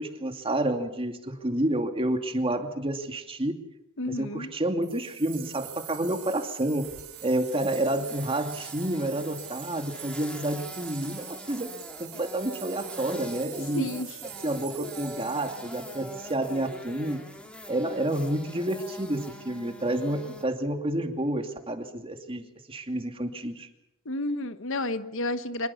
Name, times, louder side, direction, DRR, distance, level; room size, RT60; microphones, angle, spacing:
voice 1, 0.0-3.6 4.1-6.9 7.2-11.7 12.0-13.9 14.4-17.2 17.7-23.7, right 1 dB, 25° right, 5 dB, 2.6 m, -29 dB
voice 2, 4.0-4.5 13.7-14.2 14.8-14.9 24.0-25.7, left 2 dB, 65° left, 11 dB, 1.2 m, -31 dB
sound 1, 4.8-16.8, right 15 dB, 75° right, 2.0 m, -45 dB
sound 2, 6.8-20.4, equal, 5° left, 3.2 m, -44 dB
26.0 x 22.0 x 7.2 m, 0.90 s
head